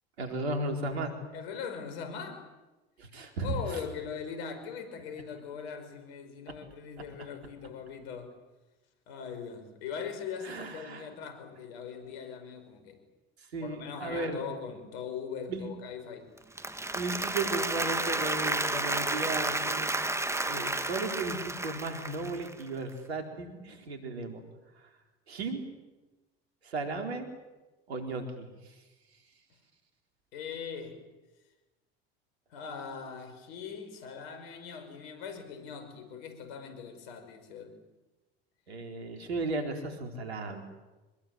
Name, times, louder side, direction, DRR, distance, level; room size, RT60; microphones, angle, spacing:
voice 1, 0.2-1.1 3.0-3.8 7.2-7.3 10.4-11.1 13.4-14.4 15.5-15.7 16.9-20.0 20.4-24.4 24.8-24.9 25.3-25.7 26.6-27.3 27.9-28.8 38.7-40.6, right 2 dB, 85° right, 4 dB, 4.4 m, -35 dB
voice 2, 1.3-2.5 3.4-8.4 9.1-13.0 13.6-16.3 30.3-31.0 32.5-37.8, left 6 dB, 75° left, 9 dB, 5.6 m, -41 dB
Applause, 16.4-22.6, right 2 dB, 10° right, 2.0 m, -31 dB
25.5 x 21.0 x 9.6 m, 1.1 s
hypercardioid pair, 70°, 31 cm